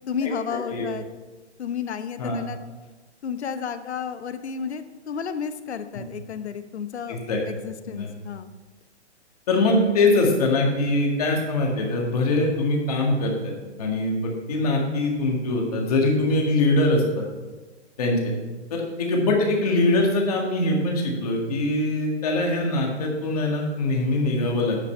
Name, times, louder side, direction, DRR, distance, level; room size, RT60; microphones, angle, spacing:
voice 1, 0.1-1.1 1.6-2.6 3.2-8.5, left 7 dB, 65° left, 11 dB, 0.9 m, -32 dB
voice 2, 7.1-7.4 7.9-8.1 9.5-13.5 13.8-17.2 18.0-18.3 18.7-24.8, left 2 dB, 35° left, 0 dB, 1.8 m, -23 dB
9.8 x 7.8 x 4.4 m, 1.2 s
hypercardioid pair, 175°, 35 cm